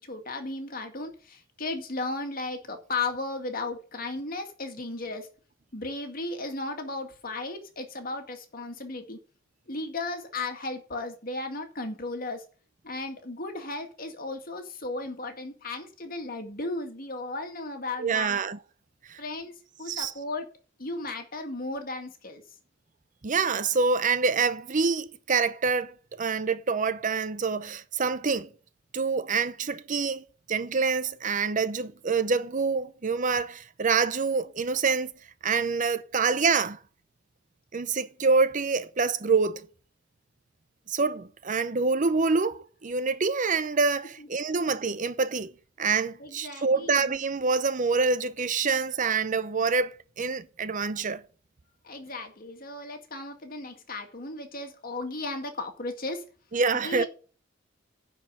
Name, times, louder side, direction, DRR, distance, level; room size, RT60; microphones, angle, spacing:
voice 1, 0.0-5.3 5.7-9.2 9.7-12.4 12.8-18.4 19.2-20.5 20.8-22.4 44.2-44.3 46.2-47.2 51.8-56.2 56.8-57.1, left 2 dB, 50° left, 2.1 m, -35 dB
voice 2, 18.0-18.6 19.1-19.2 19.9-20.1 23.2-28.5 28.9-35.1 35.4-36.8 37.7-39.6 40.9-45.5 45.8-51.2 56.5-57.1, right 4 dB, 40° right, 0.7 m, -26 dB
10.5 x 4.8 x 7.6 m
head